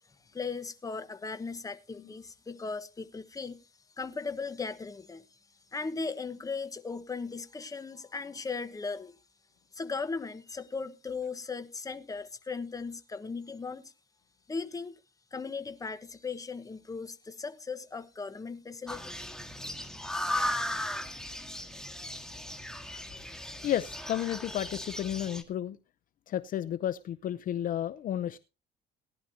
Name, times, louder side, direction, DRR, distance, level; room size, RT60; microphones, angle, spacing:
voice 1, 0.3-3.6 4.0-5.2 5.7-9.2 9.7-13.9 14.5-15.0 15.3-19.1, left 4 dB, 20° left, 1.2 m, -37 dB
sound 1, 18.9-25.4, left 1 dB, 5° left, 1.7 m, -36 dB
voice 2, 23.6-25.8 26.3-28.4, left 11 dB, 55° left, 0.6 m, -32 dB
18.0 x 11.0 x 2.8 m
cardioid pair, 110°, 17 cm